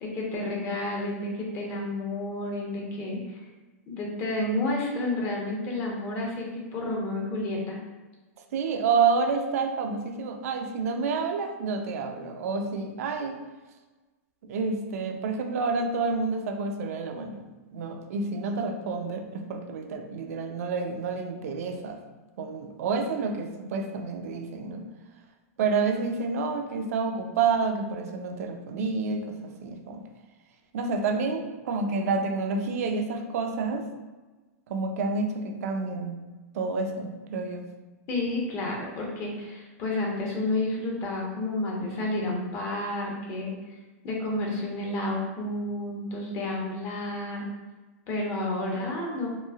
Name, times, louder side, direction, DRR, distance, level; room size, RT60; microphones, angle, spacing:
voice 1, 0.0-3.4 3.9-7.8 38.1-43.5 44.0-47.5 48.1-49.3, left 2 dB, 35° left, -1 dB, 0.7 m, -30 dB
voice 2, 8.5-13.4 14.4-22.0 22.4-24.9 25.6-30.0 30.7-33.9 34.7-36.2 36.5-37.7, right 4 dB, 70° right, 5 dB, 0.4 m, -29 dB
3.0 x 2.5 x 2.3 m, 1.2 s
supercardioid pair, 140°, 8 cm